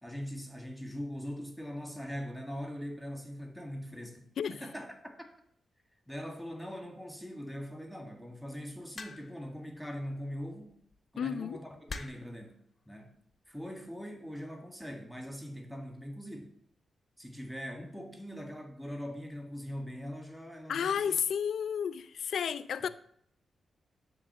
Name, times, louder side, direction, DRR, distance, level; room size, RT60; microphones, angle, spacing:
voice 1, 0.0-5.3 6.1-10.8 11.1-12.6 12.9-13.1 13.5-16.5 17.2-21.2 22.8-22.9, equal, ahead, 1.9 m, -42 dB
sound 1, 9.0-9.5 10.7-11.0 11.9-12.4 13.3-13.7, left 4 dB, 45° left, 0.9 m, -43 dB
voice 2, 11.2-11.6 20.7-22.9, left 7 dB, 75° left, 0.4 m, -32 dB
10.0 x 3.9 x 6.9 m
cardioid pair, 85°, 0 cm